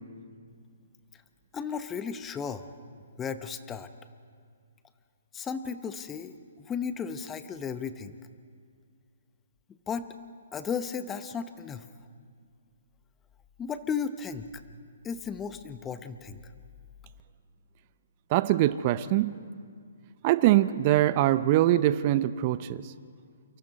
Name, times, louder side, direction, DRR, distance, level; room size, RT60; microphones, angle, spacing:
voice 1, 1.5-2.6 3.2-3.9 5.3-8.2 9.9-10.1 10.5-11.9 13.6-14.5 15.0-16.4, left 6 dB, 15° left, 11 dB, 0.9 m, -34 dB
voice 2, 18.3-19.4 20.2-22.8, right 14 dB, 35° right, 15 dB, 0.6 m, -23 dB
29.0 x 24.5 x 4.2 m, 2.1 s
hypercardioid pair, 135°, 0 cm